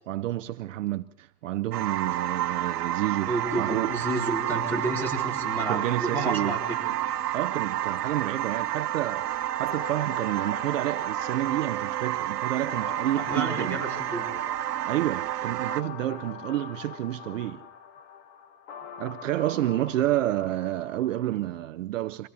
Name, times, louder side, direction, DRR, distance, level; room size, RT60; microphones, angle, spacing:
voice 1, 0.1-3.9 5.7-6.6 7.3-13.8 14.9-17.7 19.0-22.3, right 14 dB, 55° right, 0.7 m, -29 dB
sound 1, 1.7-15.8, right 12 dB, 85° right, 1.2 m, -30 dB
voice 2, 3.3-6.8 13.2-14.3, right 2 dB, 5° left, 4.3 m, -30 dB
sound 2, 9.7-21.7, left 7 dB, 45° left, 1.6 m, -44 dB
24.5 x 17.0 x 7.1 m
supercardioid pair, 165°, 46 cm